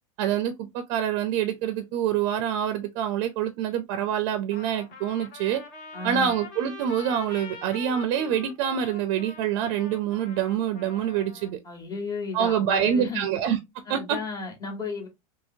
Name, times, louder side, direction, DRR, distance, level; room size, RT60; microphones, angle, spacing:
voice 1, 0.2-5.6 6.0-11.6 12.3-13.6 13.9-14.0, right 9 dB, 55° right, 0.5 m, -26 dB
Trumpet, 4.5-11.5, left 5 dB, 50° left, 1.3 m, -43 dB
voice 2, 5.9-6.3 11.6-13.3 13.9-15.1, left 4 dB, 20° left, 1.2 m, -33 dB
2.8 x 2.7 x 2.6 m
supercardioid pair, 120°, 18 cm